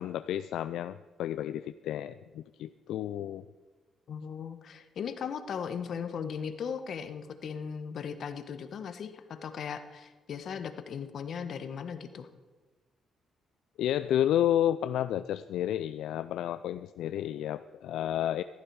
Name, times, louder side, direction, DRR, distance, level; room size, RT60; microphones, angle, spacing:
voice 1, 0.0-3.4 13.8-18.4, left 11 dB, 80° left, 13 dB, 0.3 m, -31 dB
voice 2, 4.1-12.3, left 7 dB, 60° left, 9 dB, 1.2 m, -38 dB
15.0 x 12.5 x 4.7 m, 1.3 s
cardioid pair, 90°, 0 cm